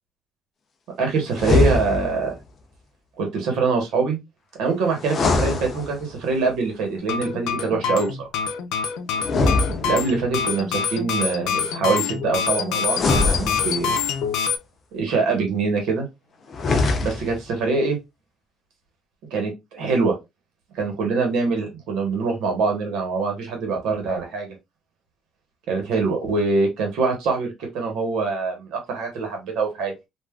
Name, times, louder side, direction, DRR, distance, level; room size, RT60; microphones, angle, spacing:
voice 1, 1.0-2.3 3.2-4.2 4.6-8.3 9.8-13.9 14.9-16.1 17.0-18.0 19.3-20.2 20.7-24.5 25.7-29.9, right 4 dB, 70° right, 2 dB, 1.1 m, -24 dB
sound 1, 1.3-2.3 5.0-6.3 9.2-10.4 12.9-14.1 16.5-17.5, left 3 dB, 30° left, 0.4 m, -23 dB
sound 2, 7.0-14.6, left 6 dB, 80° left, 0.6 m, -26 dB
3.5 x 2.4 x 2.3 m, 0.22 s
cardioid pair, 180°, 0 cm